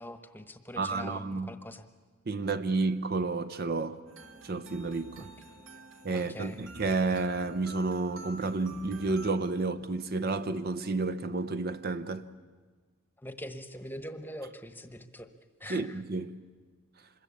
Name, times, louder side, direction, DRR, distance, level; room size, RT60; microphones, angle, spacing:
voice 1, 0.0-1.9 5.2-5.3 6.1-6.6 13.2-15.3 15.6-16.0, left 1 dB, 10° left, 1.1 m, -43 dB
voice 2, 0.8-1.5 2.3-4.0 4.4-5.3 6.0-12.3 15.7-16.4, right 3 dB, 45° right, 0.8 m, -31 dB
sound 1, 4.1-9.3, right 2 dB, 65° right, 2.4 m, -49 dB
26.0 x 22.0 x 8.5 m
head